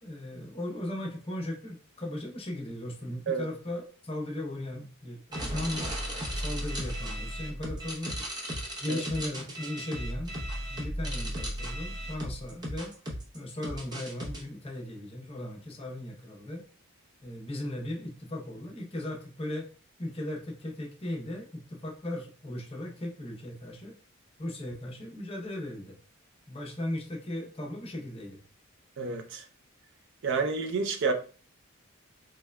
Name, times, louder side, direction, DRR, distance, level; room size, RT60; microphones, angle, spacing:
voice 1, 0.0-5.9 6.3-8.2 8.8-10.4 10.7-12.9 13.3-16.7 17.2-19.7 20.0-24.0 24.4-26.0 26.5-28.4, left 1 dB, 25° left, 0.7 m, -37 dB
sound 1, 5.3-14.4, equal, 20° right, 0.7 m, -35 dB
voice 2, 29.0-29.4 30.2-31.1, right 4 dB, 55° right, 0.5 m, -29 dB
3.4 x 3.2 x 2.2 m
head